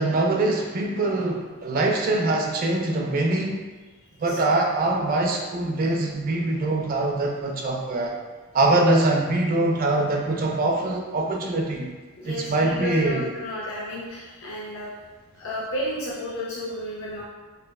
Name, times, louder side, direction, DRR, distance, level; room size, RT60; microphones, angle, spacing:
voice 1, 0.0-3.6 4.2-8.1 8.5-11.9 12.2-13.3, right 2 dB, 40° right, 0 dB, 0.3 m, -23 dB
voice 2, 12.2-14.9 15.3-17.2, equal, 60° left, -5 dB, 0.4 m, -32 dB
3.2 x 2.0 x 2.2 m, 1.3 s
head